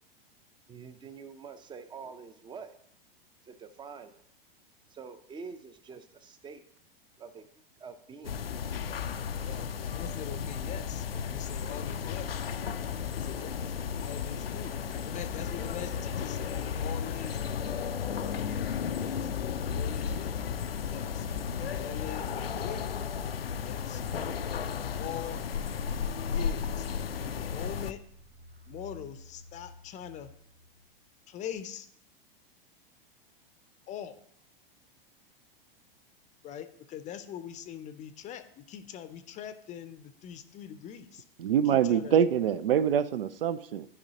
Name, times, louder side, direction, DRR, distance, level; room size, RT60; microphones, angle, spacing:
voice 1, 0.7-2.8 3.4-4.2 4.9-6.6 7.2-7.5 7.8-8.4 9.3-9.9 10.6-10.8, right 5 dB, 15° right, 12 dB, 0.6 m, -46 dB
sound 1, 8.2-27.9, left 7 dB, 85° left, 0.5 m, -34 dB
voice 2, 9.4-12.3 13.1-17.4 18.2-18.4 19.0-19.3 19.7-20.3 20.8-21.3 21.7-22.3 22.6-22.9 23.6-24.0 25.0-25.4 26.3-26.9 27.2-28.0 28.7-30.3 31.3-31.9 33.9-34.2 36.4-41.2 41.6-42.2, left 9 dB, 25° left, 11 dB, 0.6 m, -43 dB
sound 2, 24.5-31.0, left 1 dB, 90° right, 1.0 m, -52 dB
voice 3, 41.4-43.9, right 9 dB, 75° right, 15 dB, 0.5 m, -25 dB
12.0 x 5.3 x 2.8 m, 0.68 s
figure-of-eight pair, 95°, 29 cm